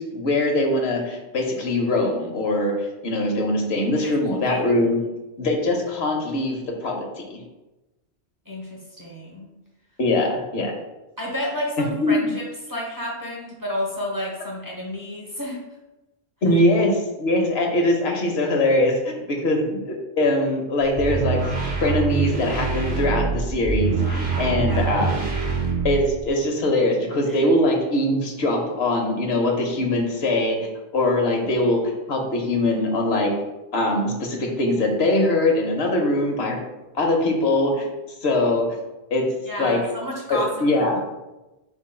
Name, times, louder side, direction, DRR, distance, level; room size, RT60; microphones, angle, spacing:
voice 1, 0.0-2.7 3.0-5.0 5.4-7.4 10.0-10.7 11.8-12.3 16.4-25.2 25.8-30.6 30.9-33.3 33.7-36.6 36.9-37.8 38.2-38.7 39.1-39.2 39.6-39.8 40.3-41.0, left 1 dB, 75° left, 1 dB, 1.0 m, -22 dB
voice 2, 3.7-4.1 4.4-4.9 8.5-9.5 11.2-15.6 24.7-24.9 27.3-27.4 39.4-41.0, left 1 dB, 20° right, -4 dB, 0.8 m, -31 dB
sound 1, 20.8-26.3, right 4 dB, 55° right, 1.0 m, -25 dB
4.5 x 4.2 x 2.2 m, 1.0 s
omnidirectional pair, 1.1 m